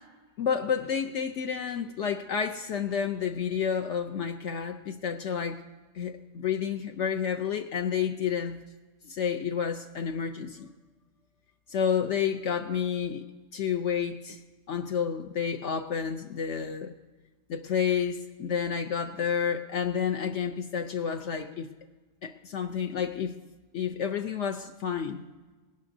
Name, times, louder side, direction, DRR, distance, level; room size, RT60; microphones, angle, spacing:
voice 1, 0.4-5.6 5.9-8.6 9.0-10.7 11.7-13.3 13.5-14.4 14.7-16.9 17.5-21.7 22.2-23.3 23.7-25.2, left 7 dB, 65° left, 5 dB, 0.9 m, -30 dB
19.5 x 18.0 x 2.7 m, 1.3 s
omnidirectional pair, 1.4 m